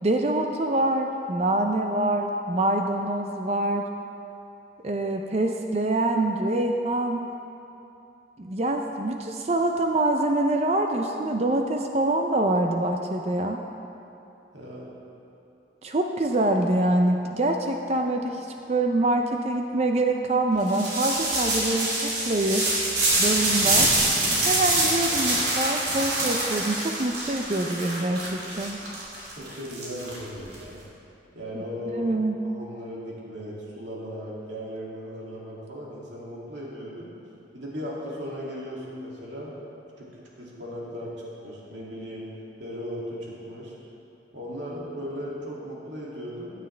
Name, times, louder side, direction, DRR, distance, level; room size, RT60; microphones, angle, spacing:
voice 1, 0.0-3.9 4.8-7.2 8.4-13.6 15.8-22.7 23.2-23.9 24.4-28.8 31.9-32.4, right 2 dB, 35° right, 4 dB, 0.5 m, -25 dB
voice 2, 14.5-14.9 29.4-30.8 31.3-32.1 32.4-37.1 37.5-39.5 40.0-40.1 40.4-41.1 41.4-42.3 42.6-43.7 44.3-46.5, equal, 80° right, -5 dB, 2.5 m, -37 dB
sound 1, 20.7-30.6, right 2 dB, 65° right, 2.9 m, -25 dB
15.5 x 9.1 x 3.3 m, 2.8 s
head